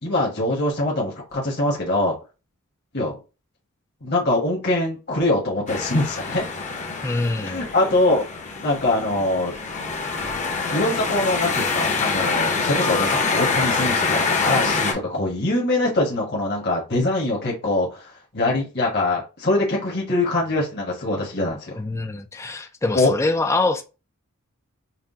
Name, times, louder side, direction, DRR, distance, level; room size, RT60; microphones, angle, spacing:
voice 1, 0.0-2.1 2.9-3.1 4.0-6.4 7.4-8.2 8.6-9.5 10.7-21.8 22.9-23.1, left 2 dB, 50° left, 1.2 m, -23 dB
sound 1, 5.7-14.9, left 4 dB, 35° left, 0.7 m, -25 dB
voice 2, 7.0-7.6 21.8-23.8, left 2 dB, 15° left, 0.3 m, -24 dB
5.8 x 2.1 x 2.7 m
head